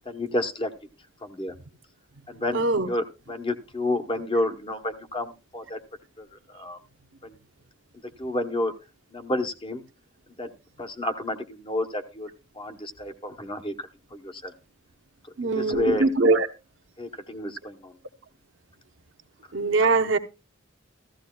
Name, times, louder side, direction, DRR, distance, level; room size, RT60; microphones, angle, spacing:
voice 1, 0.1-0.7 1.2-1.5 2.3-5.8 6.2-6.8 7.2-7.4 8.2-8.7 9.1-9.8 10.4-12.3 12.6-14.5 15.4-16.1 17.0-17.9, left 1 dB, 25° left, 0.9 m, -30 dB
voice 2, 2.5-2.9 15.4-16.5 19.5-20.2, right 3 dB, 65° right, 0.9 m, -22 dB
15.5 x 14.0 x 2.2 m
head